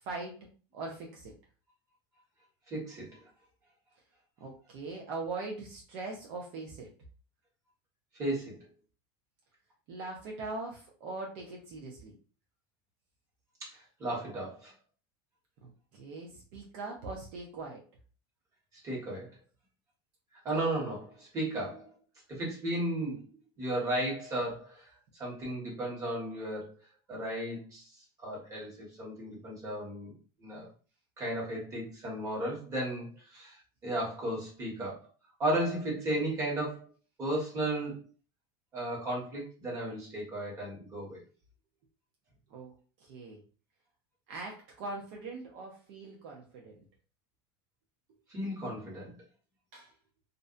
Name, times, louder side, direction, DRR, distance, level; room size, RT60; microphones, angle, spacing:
voice 1, 0.0-0.4 0.7-1.3 4.4-6.9 9.9-12.1 15.6-17.8 42.5-42.7 43.0-43.4 44.3-46.8 49.7-49.9, right 3 dB, 60° right, -1 dB, 0.6 m, -41 dB
voice 2, 2.7-3.2 8.1-8.6 13.6-14.7 18.8-19.3 20.4-21.9 22.3-23.2 23.6-26.7 27.1-27.9 28.2-30.1 30.4-30.7 31.2-35.1 35.4-36.9 37.2-38.0 38.7-41.2 48.3-49.1, right 1 dB, 25° right, -4 dB, 1.3 m, -34 dB
2.5 x 2.1 x 2.4 m, 0.37 s
supercardioid pair, 155°, 12 cm